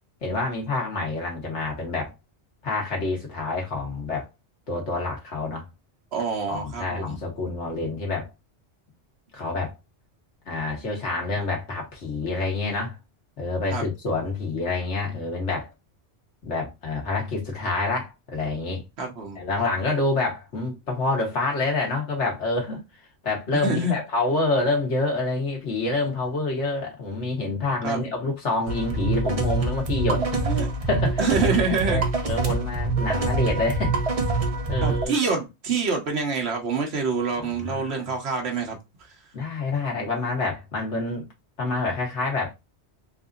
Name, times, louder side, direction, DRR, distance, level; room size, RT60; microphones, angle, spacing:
voice 1, 0.2-2.1 2.6-4.3 4.7-5.7 6.5-8.3 9.3-9.7 10.5-13.0 13.4-15.7 16.4-18.8 19.3-22.8 23.2-30.2 30.9-31.2 31.7-34.0 34.7-35.2 37.4-38.1 39.3-41.3 41.6-42.5, left 3 dB, 85° left, 1.8 m, -27 dB
voice 2, 6.1-7.2 13.7-13.9 19.0-19.4 23.6-24.0 27.8-28.1 30.4-30.7 31.2-32.0 34.8-38.8, right 4 dB, 65° right, 1.3 m, -26 dB
sound 1, 28.7-35.0, right 3 dB, 35° right, 0.7 m, -25 dB
4.0 x 2.7 x 2.4 m
omnidirectional pair, 1.2 m